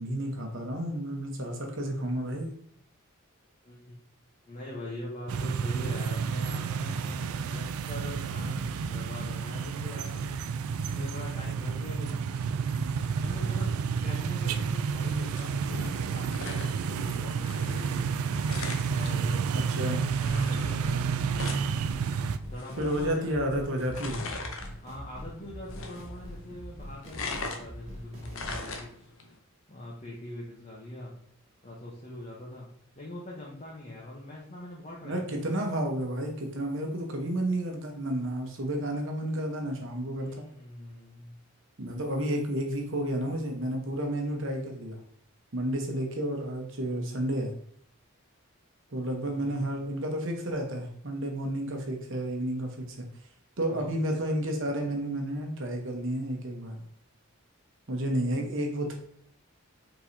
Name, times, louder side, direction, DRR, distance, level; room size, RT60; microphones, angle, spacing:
voice 1, 0.0-2.5 19.5-20.0 22.8-24.2 35.0-40.4 41.8-45.0 45.5-47.5 48.9-53.1 53.6-56.8 57.9-58.9, right 1 dB, 60° right, 2 dB, 1.0 m, -31 dB
voice 2, 3.6-3.9 4.5-10.4 10.9-12.4 13.2-18.3 18.8-21.8 22.5-23.5 24.8-29.1 29.7-31.2 31.6-32.7 33.0-35.4 40.2-41.4 49.2-49.9 53.7-54.0, left 1 dB, 30° left, -5 dB, 0.9 m, -43 dB
sound 1, 5.3-22.4, right 6 dB, 75° right, 0.3 m, -30 dB
sound 2, 14.9-29.3, left 3 dB, 65° left, 0.7 m, -42 dB
sound 3, 20.5-28.7, equal, 30° right, 1.1 m, -43 dB
4.7 x 3.9 x 2.7 m, 0.65 s
head